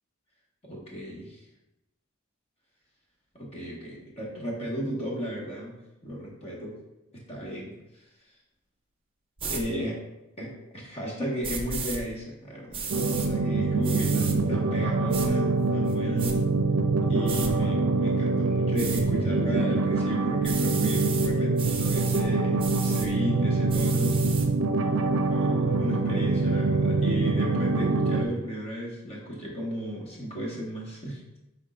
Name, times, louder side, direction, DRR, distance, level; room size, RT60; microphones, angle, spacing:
voice 1, 0.6-1.4 3.3-5.8 6.0-6.7 7.1-7.7 9.4-10.0 10.4-16.3 17.0-24.2 24.7-31.4, equal, 30° left, -3 dB, 1.6 m, -35 dB
sound 1, 9.4-9.6 11.4-12.0 12.7-13.3 13.8-14.4 15.1-15.3 15.9-16.3 17.3-17.5 18.8-19.0 20.4-21.3 21.6-22.2 22.6-23.1 23.7-24.5, right 5 dB, 25° right, 0.7 m, -34 dB
sound 2, 12.9-28.2, right 3 dB, 70° right, 0.5 m, -25 dB
10.0 x 3.8 x 2.5 m, 0.94 s
head